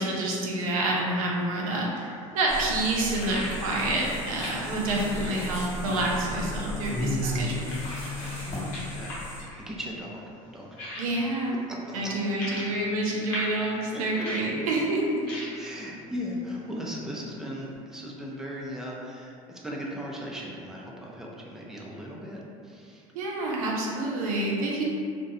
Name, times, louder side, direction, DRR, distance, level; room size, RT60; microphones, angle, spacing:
voice 1, 0.0-7.7 11.0-11.5 11.9-15.2 23.1-24.8, right 2 dB, 80° right, -3 dB, 0.5 m, -28 dB
sound 1, 2.0-17.8, left 1 dB, 65° left, 0.7 m, -43 dB
sound 2, 2.5-9.4, left 1 dB, 40° left, 1.0 m, -34 dB
voice 2, 8.4-9.2 9.6-10.2 10.5-11.1 11.9-12.3 13.9-14.3 15.5-23.0, equal, 5° right, -4 dB, 0.4 m, -38 dB
2.3 x 2.1 x 2.6 m, 2.4 s
hypercardioid pair, 70°, 18 cm